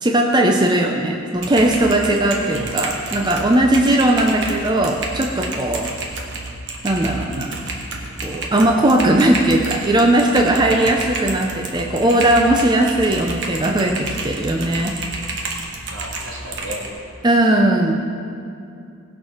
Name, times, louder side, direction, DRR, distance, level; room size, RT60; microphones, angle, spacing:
voice 1, 0.0-5.9 6.8-7.5 8.2-15.3 17.2-17.9, right 1 dB, 20° right, 1 dB, 0.6 m, -18 dB
Typing, 1.4-16.9, right 2 dB, 55° right, 1.4 m, -30 dB
voice 2, 2.5-2.9 10.7-11.0 15.9-16.8, equal, 70° right, -2 dB, 2.0 m, -33 dB
18.5 x 6.5 x 4.4 m, 2.5 s
head